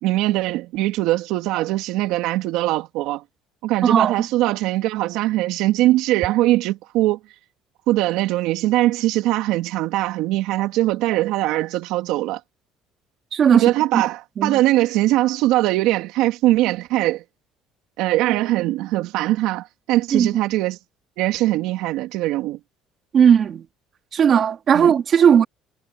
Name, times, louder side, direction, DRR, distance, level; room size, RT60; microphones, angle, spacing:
voice 1, 0.0-3.2 3.6-7.2 7.9-12.4 13.5-17.2 18.0-20.8 21.2-22.6 24.7-24.9, right 16 dB, 75° right, 2.7 m, -21 dB
voice 2, 3.8-4.3 13.3-14.0 14.4-14.6 20.1-20.3 23.1-23.6 24.1-25.4, right 8 dB, 35° right, 2.9 m, -16 dB
cardioid pair, 155°, 0 cm